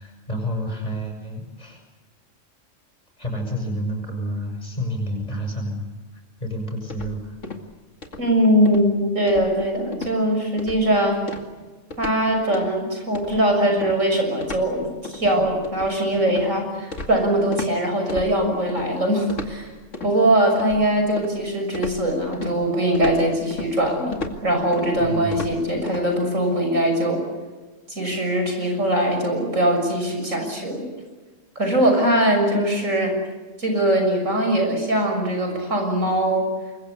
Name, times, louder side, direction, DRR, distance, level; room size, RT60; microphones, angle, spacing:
voice 1, 0.0-1.8 3.2-5.9 6.4-7.4 25.0-25.4, equal, 30° left, 3 dB, 7.2 m, -29 dB
sound 1, 6.9-7.7 8.0-8.3 8.7-8.9 9.3-9.7 9.9-10.2 10.6-10.9 11.3-12.2 12.5-12.8 13.1-17.7 18.1-18.9 19.3-20.1 20.6-21.4 21.7-26.1, left 3 dB, 70° left, 2.6 m, -35 dB
voice 2, 8.2-11.2 12.0-19.7 20.0-27.2 27.9-30.9 31.6-33.2 33.6-36.5, right 1 dB, 85° right, 4 dB, 7.0 m, -21 dB
27.0 x 22.5 x 8.4 m, 1.3 s
omnidirectional pair, 1.3 m